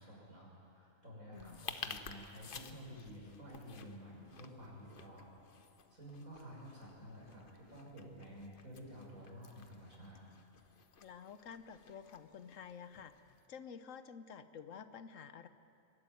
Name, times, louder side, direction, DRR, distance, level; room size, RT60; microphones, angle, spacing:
voice 1, 0.0-5.3 5.9-10.3, equal, 85° right, -4 dB, 6.5 m, -52 dB
voice 2, 1.3-1.7 11.0-13.1 13.5-15.5, left 7 dB, 70° left, 11 dB, 1.2 m, -50 dB
sound 1, 1.3-13.5, left 5 dB, 45° left, 1.0 m, -53 dB
24.0 x 13.0 x 9.3 m, 2.6 s
omnidirectional pair, 1.4 m